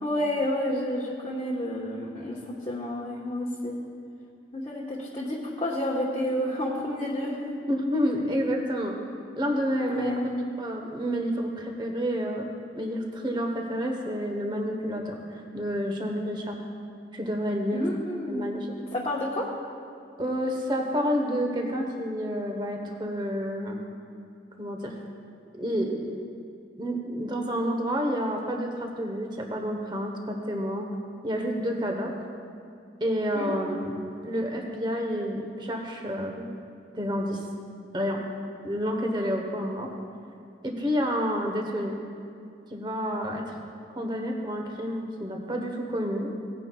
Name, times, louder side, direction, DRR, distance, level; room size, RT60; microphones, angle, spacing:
voice 1, 0.0-3.8 4.5-7.5 9.7-10.3 17.7-18.5 18.9-19.5 33.3-33.5, left 1 dB, 30° left, -6 dB, 1.1 m, -30 dB
voice 2, 7.7-9.0 9.4-12.5 12.7-16.6 17.1-17.8 18.3-18.7 20.2-23.8 24.6-25.0 25.5-26.2 26.8-30.9 31.2-32.1 33.0-33.9 34.2-36.5 36.9-37.4 37.9-38.2 38.6-39.9 40.6-41.9 42.7-43.6 43.9-46.3, equal, 25° right, 2 dB, 1.0 m, -29 dB
17.5 x 9.7 x 2.3 m, 2.4 s
head